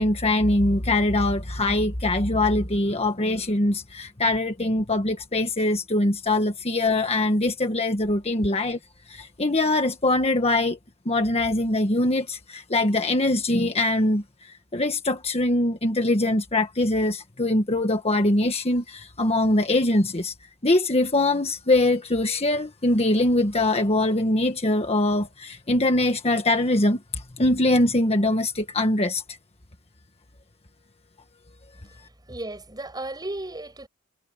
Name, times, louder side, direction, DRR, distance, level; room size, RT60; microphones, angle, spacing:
voice 1, 0.0-8.8 9.1-10.8 11.0-14.2 14.7-20.3 20.6-29.2, left 2 dB, 30° left, 1.5 m, -23 dB
voice 2, 31.7-33.9, right 2 dB, 20° right, 8.0 m, -35 dB
head